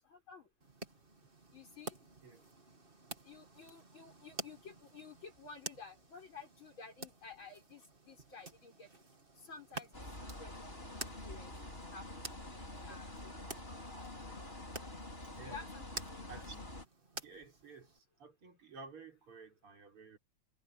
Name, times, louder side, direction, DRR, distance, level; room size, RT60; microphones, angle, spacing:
sound 1, 0.6-18.0, right 2 dB, 25° right, 2.4 m, -51 dB
voice 1, 1.5-2.0 3.2-8.9 9.3-9.9 10.4-11.5 11.9-12.1 12.7-13.3 15.4-15.9, left 4 dB, 65° left, 6.7 m, -52 dB
sound 2, 9.9-16.9, left 1 dB, 25° left, 5.9 m, -47 dB
voice 2, 15.3-15.7 16.3-16.7 17.2-20.2, right 4 dB, 85° right, 5.2 m, -53 dB
omnidirectional pair, 2.4 m